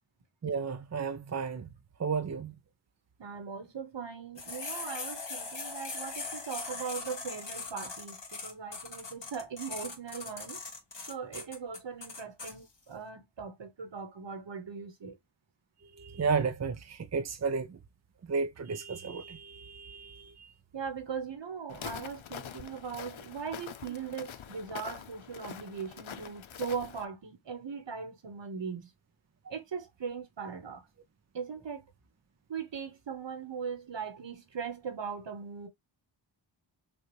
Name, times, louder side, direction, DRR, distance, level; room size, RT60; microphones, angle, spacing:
voice 1, 0.4-1.7 2.0-2.5 16.0-17.8 18.3-20.5, right 5 dB, 35° right, 0.6 m, -33 dB
voice 2, 3.2-10.6 11.1-15.2 20.7-28.9 29.5-30.8 31.3-31.8 32.5-35.7, right 6 dB, 65° right, 1.3 m, -39 dB
sound 1, 4.4-12.5, left 4 dB, 65° left, 2.1 m, -40 dB
Walk footsteps, 21.7-27.1, left 9 dB, 85° left, 0.7 m, -44 dB
6.4 x 2.5 x 3.1 m
wide cardioid pair, 95°, 46 cm